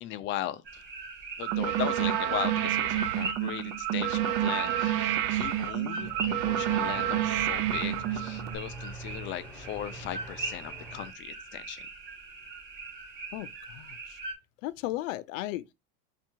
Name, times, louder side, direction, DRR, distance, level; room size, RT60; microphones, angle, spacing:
voice 1, 0.0-0.8 1.4-6.1 6.4-11.8, left 13 dB, 35° left, 0.4 m, -38 dB
sound 1, 0.6-14.3, right 3 dB, 30° right, 2.5 m, -41 dB
sound 2, 1.4-8.5, right 11 dB, 70° right, 0.8 m, -29 dB
sound 3, 6.0-11.1, right 2 dB, 5° left, 0.9 m, -45 dB
voice 2, 13.3-14.2 14.6-15.7, left 16 dB, 90° left, 0.5 m, -36 dB
4.4 x 2.5 x 4.4 m
supercardioid pair, 145°, 37 cm